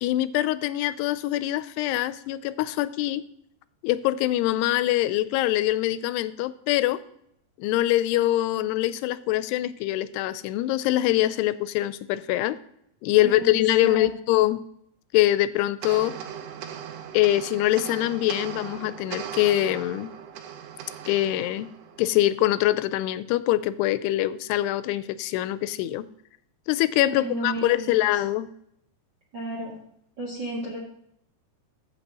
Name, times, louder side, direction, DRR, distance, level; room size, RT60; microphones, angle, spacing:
voice 1, 0.0-3.2 3.8-7.0 7.6-12.6 13.0-14.6 15.1-16.1 17.1-20.1 21.1-21.7 22.0-26.1 26.7-28.5, left 15 dB, 90° left, 15 dB, 2.6 m, -24 dB
voice 2, 13.2-13.6 13.8-14.1 27.1-28.2 29.3-29.8 30.2-30.8, right 1 dB, 50° right, -3 dB, 1.3 m, -33 dB
sound 1, 15.8-22.5, right 8 dB, 85° right, 2.9 m, -39 dB
14.5 x 6.0 x 2.9 m, 0.73 s
omnidirectional pair, 4.6 m